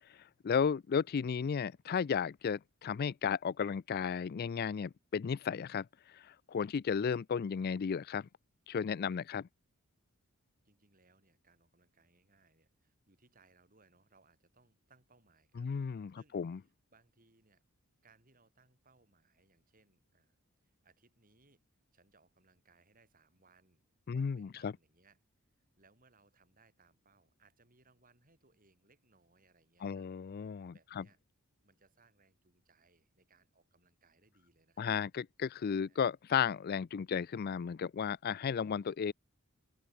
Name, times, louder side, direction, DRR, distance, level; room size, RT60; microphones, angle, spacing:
voice 1, 0.4-5.9 6.1-8.3 8.7-9.5 15.6-16.6 24.1-24.7 29.8-31.0 34.8-39.1, left 6 dB, 45° left, 0.3 m, -34 dB
voice 2, 10.6-15.7 16.1-17.6 18.0-20.4 20.6-21.7 21.9-23.8 24.1-25.2 25.8-30.1 30.7-31.2 31.6-35.0 35.9-36.1, right 3 dB, 40° right, 7.8 m, -68 dB
open air
head